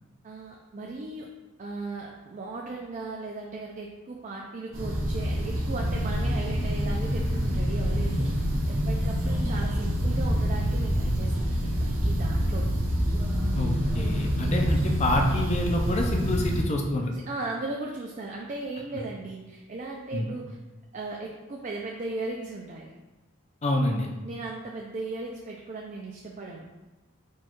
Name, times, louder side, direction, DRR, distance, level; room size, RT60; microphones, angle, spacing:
voice 1, 0.2-1.3 1.6-8.3 8.7-12.7 17.1-20.6 20.9-22.9 24.2-26.7, right 3 dB, 35° right, -1 dB, 0.4 m, -37 dB
sound 1, 4.7-16.6, equal, 65° right, 0.9 m, -26 dB
voice 2, 13.5-17.1 20.1-20.3 23.6-24.1, left 1 dB, 30° left, 1 dB, 0.4 m, -27 dB
4.3 x 2.3 x 4.4 m, 1.1 s
head